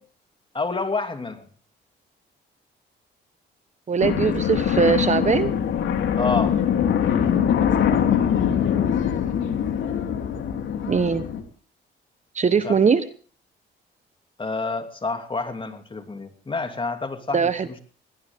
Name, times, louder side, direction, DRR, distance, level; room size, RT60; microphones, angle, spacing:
voice 1, 0.5-1.5 6.2-6.6 12.6-12.8 14.4-17.8, left 3 dB, 25° left, 6 dB, 2.7 m, -28 dB
voice 2, 3.9-5.5 7.9-8.0 10.9-11.2 12.3-13.0 17.3-17.8, right 5 dB, 35° right, 12 dB, 1.2 m, -21 dB
sound 1, 4.0-11.4, left 8 dB, 75° left, 3.1 m, -22 dB
20.5 x 18.0 x 3.7 m, 0.41 s
cardioid pair, 90°, 20 cm